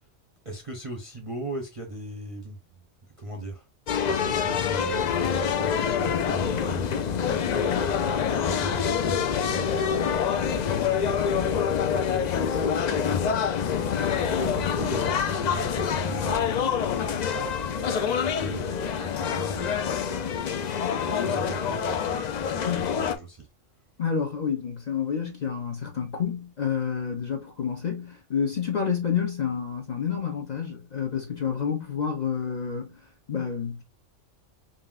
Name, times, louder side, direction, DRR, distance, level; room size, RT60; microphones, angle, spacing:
voice 1, 0.4-2.6 3.2-3.7 4.0-16.7 17.7-20.4 21.1-23.5, right 2 dB, 35° right, 0.6 m, -39 dB
sound 1, 3.9-23.1, left 7 dB, 90° left, 0.3 m, -26 dB
voice 2, 24.0-33.8, left 7 dB, 45° left, 0.7 m, -29 dB
5.3 x 2.7 x 2.4 m
omnidirectional pair, 1.3 m